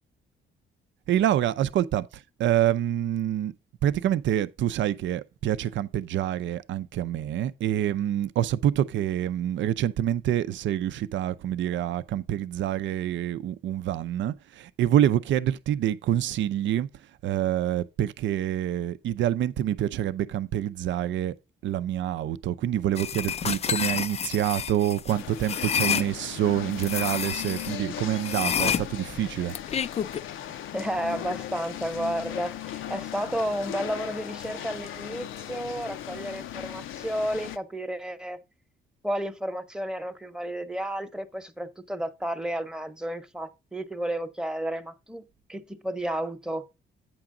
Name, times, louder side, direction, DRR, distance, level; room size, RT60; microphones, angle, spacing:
voice 1, 1.1-3.5 3.8-16.9 17.2-21.3 21.6-29.6, right 11 dB, 70° right, 0.6 m, -26 dB
sound 1, 23.0-26.1 26.8-27.7 28.2-30.2, left 7 dB, 35° left, 0.3 m, -29 dB
sound 2, 25.1-37.6, left 11 dB, 80° left, 0.6 m, -38 dB
voice 2, 30.7-38.4 39.0-46.6, right 1 dB, 5° right, 0.9 m, -32 dB
8.7 x 5.9 x 3.8 m
cardioid pair, 90°, 20 cm